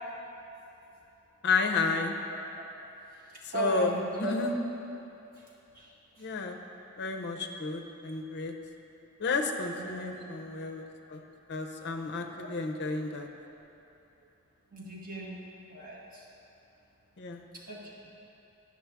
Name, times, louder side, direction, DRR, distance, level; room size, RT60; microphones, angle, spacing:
voice 1, 1.4-2.2 3.4-4.6 6.2-6.6 7.0-8.5 9.2-11.2 11.5-13.3 17.2-17.4, left 4 dB, 50° left, 4 dB, 0.5 m, -31 dB
voice 2, 3.3-4.3 5.7-5.9 9.7-10.1 12.4-12.5 14.7-15.4 15.7-16.2 17.7-17.8, right 2 dB, 40° right, -5 dB, 1.2 m, -37 dB
9.4 x 6.4 x 3.5 m, 2.9 s
head